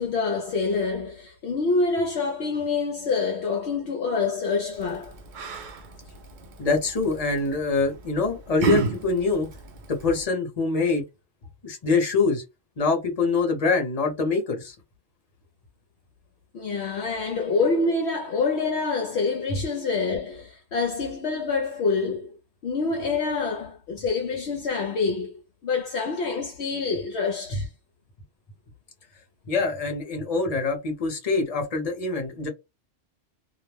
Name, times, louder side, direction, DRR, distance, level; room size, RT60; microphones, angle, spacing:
voice 1, 0.0-5.1 16.5-22.4 22.6-27.7, left 4 dB, 65° left, 0.8 m, -26 dB
Yell, 4.7-10.2, right 5 dB, 60° right, 0.5 m, -33 dB
voice 2, 6.6-9.5 9.9-11.0 11.6-12.4 12.8-14.7 29.5-32.5, left 4 dB, 35° left, 0.9 m, -24 dB
2.4 x 2.1 x 3.3 m
omnidirectional pair, 1.3 m